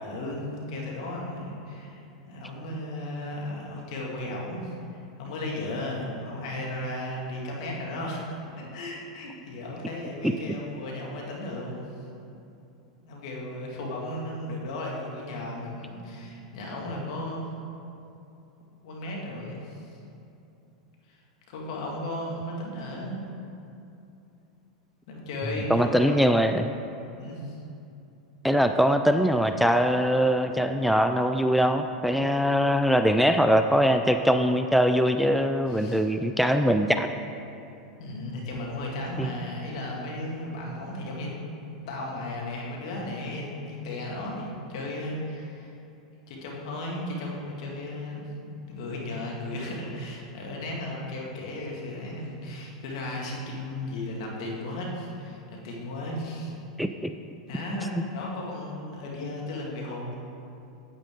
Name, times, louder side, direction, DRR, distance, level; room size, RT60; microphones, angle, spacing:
voice 1, 0.0-8.2 8.6-11.8 13.0-17.4 18.8-19.9 21.1-21.2 21.5-23.2 25.1-26.4 27.2-27.6 35.7-36.1 38.0-41.3 41.7-45.7 46.3-56.6 57.5-60.1, left 1 dB, 65° left, -2 dB, 2.0 m, -35 dB
voice 2, 25.7-26.7 28.4-37.1 39.2-39.3 56.8-57.1, equal, ahead, 7 dB, 0.3 m, -22 dB
8.9 x 8.4 x 3.7 m, 2.7 s
hypercardioid pair, 100°, 4 cm